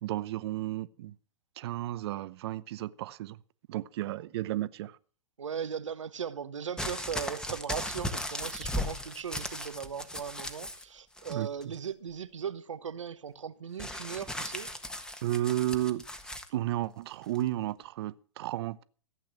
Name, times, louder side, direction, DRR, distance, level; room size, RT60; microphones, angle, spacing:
voice 1, 0.0-1.1 1.6-3.4 3.7-5.0 11.3-11.5 15.2-16.0 16.5-18.8, right 14 dB, 60° right, 0.8 m, -33 dB
voice 2, 5.4-14.7, right 7 dB, 85° right, 1.2 m, -38 dB
sound 1, 6.8-10.8 11.2-11.7 13.8-16.5 17.3-17.4, left 1 dB, 5° left, 1.5 m, -37 dB
15.5 x 8.6 x 7.4 m
hypercardioid pair, 115°, 15 cm